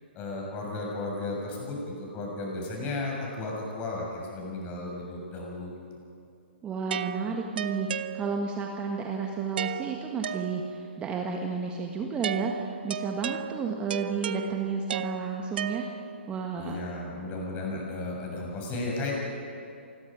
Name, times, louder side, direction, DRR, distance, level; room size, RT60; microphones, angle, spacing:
voice 1, 0.1-5.7 16.6-19.1, left 2 dB, 25° left, -2 dB, 7.0 m, -34 dB
voice 2, 6.6-15.8 16.3-16.8, right 5 dB, 15° right, 2 dB, 1.6 m, -32 dB
sound 1, 6.9-8.7 9.6-11.0 12.2-16.3, right 9 dB, 55° right, 0.6 m, -35 dB
27.0 x 21.0 x 5.1 m, 2.6 s
figure-of-eight pair, 125°, 6 cm